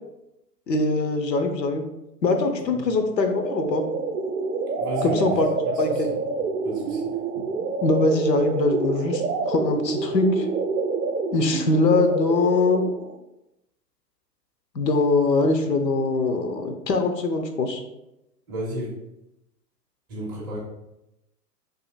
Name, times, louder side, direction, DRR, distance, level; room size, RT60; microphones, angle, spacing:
voice 1, 0.7-1.8 2.2-3.8 5.0-5.5 5.8-6.1 7.8-10.5 11.3-12.8 14.7-17.8, left 3 dB, 80° left, 5 dB, 0.7 m, -22 dB
sound 1, 3.2-13.2, right 4 dB, 65° right, 0.6 m, -27 dB
voice 2, 4.8-5.3 5.6-6.2 6.6-7.0 18.5-18.9 20.1-20.6, equal, 15° right, -5 dB, 0.4 m, -33 dB
2.8 x 2.7 x 3.9 m, 0.90 s
figure-of-eight pair, 115°, 50 cm